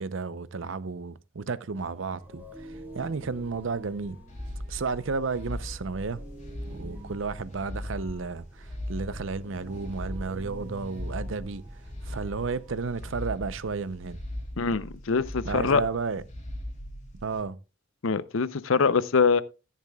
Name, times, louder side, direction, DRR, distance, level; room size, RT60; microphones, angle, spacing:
voice 1, 0.0-4.2 4.7-6.2 6.7-11.6 12.0-14.2 15.4-16.2 17.2-17.6, right 4 dB, 70° right, 0.6 m, -32 dB
sound 1, 1.8-14.6, equal, 10° right, 3.1 m, -47 dB
sound 2, 4.3-17.4, left 1 dB, 35° left, 3.0 m, -39 dB
voice 2, 14.6-15.8 18.0-19.4, left 5 dB, 75° left, 0.6 m, -24 dB
14.5 x 10.0 x 2.3 m
head